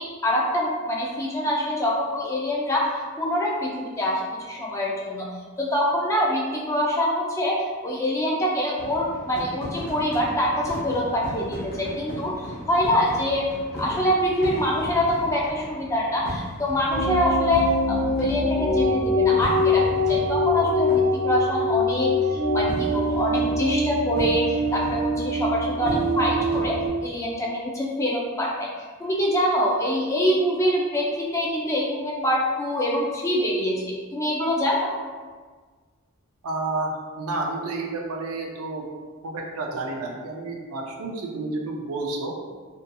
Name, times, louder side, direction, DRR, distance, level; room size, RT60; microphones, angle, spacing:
voice 1, 0.0-4.2 4.5-5.3 5.6-13.4 13.8-28.7 29.0-31.1 31.3-34.9, equal, 15° left, -3 dB, 0.3 m, -25 dB
sound 1, 8.8-27.0, left 1 dB, 45° left, 0.7 m, -38 dB
sound 2, 16.9-26.9, left 1 dB, 5° right, 1.0 m, -24 dB
voice 2, 36.4-38.8 39.2-42.3, right 2 dB, 90° right, 1 dB, 0.4 m, -30 dB
2.7 x 2.6 x 2.2 m, 1.5 s
head